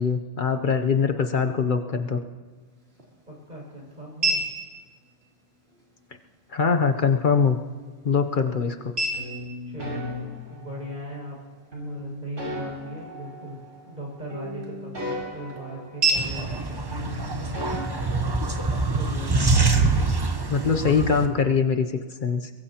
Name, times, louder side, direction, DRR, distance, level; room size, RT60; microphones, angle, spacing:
voice 1, 0.0-2.2 6.5-7.6 8.0-8.9 20.5-21.9 22.2-22.5, left 5 dB, 50° left, 6 dB, 0.8 m, -22 dB
sound 1, 2.4-18.4, right 3 dB, 55° right, 3.4 m, -35 dB
voice 2, 3.3-4.4 9.7-11.4 11.8-13.6 13.8-17.1 18.9-20.0, equal, 40° right, -3 dB, 6.1 m, -39 dB
sound 2, 9.1-11.1 11.7-14.0 14.3-16.6 16.9-18.9, equal, 85° right, 6.4 m, -36 dB
sound 3, 16.1-21.3, right 3 dB, 25° right, 0.7 m, -24 dB
22.5 x 22.0 x 2.9 m, 1.5 s
omnidirectional pair, 1.3 m